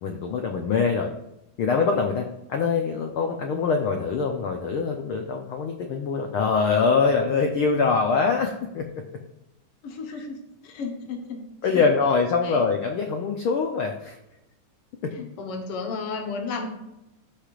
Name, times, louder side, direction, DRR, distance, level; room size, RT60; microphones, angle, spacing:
voice 1, 0.0-1.1 1.6-8.9 10.1-10.3 11.6-14.2 15.0-15.2, left 5 dB, 85° left, 3 dB, 1.1 m, -24 dB
voice 2, 9.8-10.4 10.6-11.4 11.7-11.9 12.4-12.6 15.1-16.7, left 4 dB, 55° left, 2 dB, 1.9 m, -33 dB
14.5 x 5.1 x 2.5 m, 0.93 s
omnidirectional pair, 3.5 m